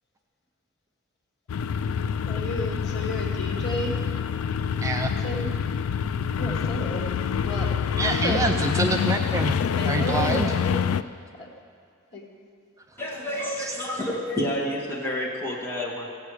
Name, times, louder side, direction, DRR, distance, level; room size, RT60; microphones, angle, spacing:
sound 1, 1.5-11.0, left 7 dB, 75° left, 0.3 m, -26 dB
voice 1, 2.3-3.9 5.2-5.5 6.4-7.1 7.4-7.7 8.1-8.5 9.8-10.7 11.4-11.5 12.1-12.2, equal, 55° left, -1 dB, 2.0 m, -32 dB
voice 2, 4.8-5.1 8.0-9.6 9.9-10.5 13.6-13.7, right 2 dB, 15° right, 4 dB, 0.4 m, -26 dB
voice 3, 13.0-16.1, left 1 dB, 10° left, -4 dB, 1.8 m, -29 dB
16.5 x 8.0 x 4.9 m, 2.3 s
head